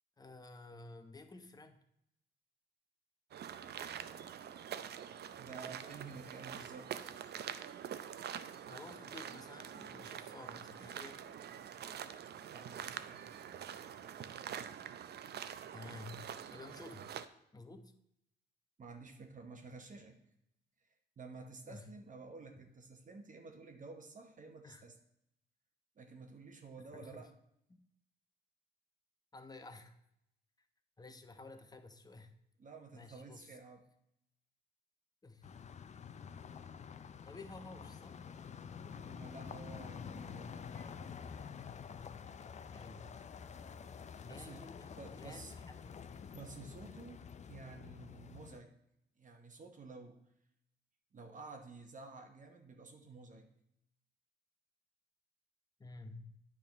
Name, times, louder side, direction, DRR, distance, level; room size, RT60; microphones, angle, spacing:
voice 1, 0.2-1.8 8.7-11.3 15.7-16.2 16.5-17.2 17.5-17.9 21.7-21.9 24.6-24.9 26.8-27.3 27.7-27.8 29.3-30.0 31.0-32.3 32.9-33.6 35.2-35.5 37.2-38.2 42.7-43.1 44.2-46.0 55.8-56.4, left 3 dB, 20° left, 7 dB, 0.9 m, -52 dB
sound 1, 3.3-17.3, right 9 dB, 55° right, 0.6 m, -46 dB
voice 2, 5.4-7.1 12.5-13.3 18.8-20.2 21.2-25.0 26.0-27.3 32.6-33.8 38.9-40.9 44.3-44.7 45.0-45.5 46.3-48.7 49.2-50.2 51.1-53.5, right 4 dB, 40° right, 5 dB, 1.1 m, -52 dB
sound 2, 35.4-48.6, left 6 dB, 35° left, 0.5 m, -49 dB
9.0 x 3.7 x 5.9 m, 0.78 s
cardioid pair, 90°, 20 cm